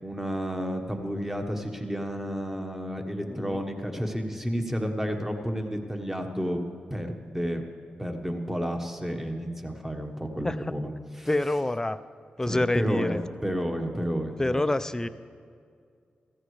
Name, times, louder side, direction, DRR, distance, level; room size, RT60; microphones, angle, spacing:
voice 1, 0.0-6.6 6.9-7.6 8.0-11.3 12.4-14.6, equal, 10° right, 4 dB, 1.4 m, -31 dB
voice 2, 3.3-3.6 10.4-10.8 11.3-12.0 12.4-13.2 14.4-15.1, left 1 dB, 15° left, 12 dB, 0.5 m, -27 dB
15.5 x 14.0 x 3.3 m, 2.3 s
cardioid pair, 55°, 3 cm